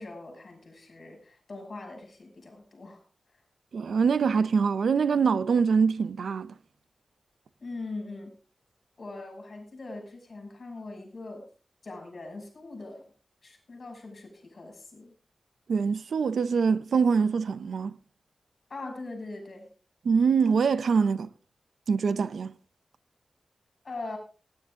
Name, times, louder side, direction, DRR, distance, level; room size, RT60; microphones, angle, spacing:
voice 1, 0.0-3.0 7.6-8.3 9.0-11.5 11.8-13.0 13.4-15.1 18.7-19.7 23.8-24.2, left 2 dB, 40° left, 6.4 m, -41 dB
voice 2, 3.7-6.5 15.7-18.0 20.0-21.3 21.9-22.5, right 5 dB, 90° right, 0.7 m, -24 dB
19.0 x 11.0 x 3.8 m
wide cardioid pair, 175°, 0 cm